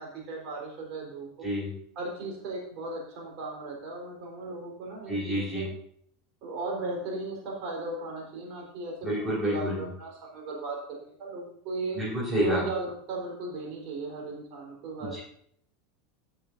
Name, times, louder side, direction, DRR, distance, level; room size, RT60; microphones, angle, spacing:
voice 1, 0.0-1.5 2.0-5.7 6.4-12.0 12.4-15.2, right 2 dB, 45° right, -1 dB, 4.1 m, -36 dB
voice 2, 1.4-1.7 5.1-5.7 9.0-9.8 11.9-12.6 15.0-15.2, equal, 15° right, -8 dB, 4.6 m, -29 dB
13.5 x 8.6 x 2.7 m, 0.65 s
figure-of-eight pair, 80°, 0 cm